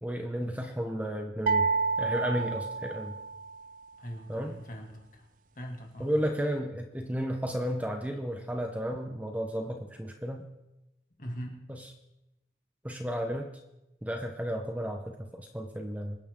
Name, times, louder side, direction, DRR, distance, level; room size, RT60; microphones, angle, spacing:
voice 1, 0.0-1.7 2.0-3.1 4.3-4.5 6.0-10.5 11.7-11.9 12.8-13.5 14.0-16.2, equal, 10° right, 4 dB, 0.9 m, -33 dB
sound 1, 1.5-3.6, right 4 dB, 45° right, 0.4 m, -29 dB
voice 2, 4.0-5.2 5.6-6.1 11.2-11.6, equal, 45° left, 1 dB, 2.4 m, -41 dB
24.0 x 9.9 x 3.7 m, 0.92 s
head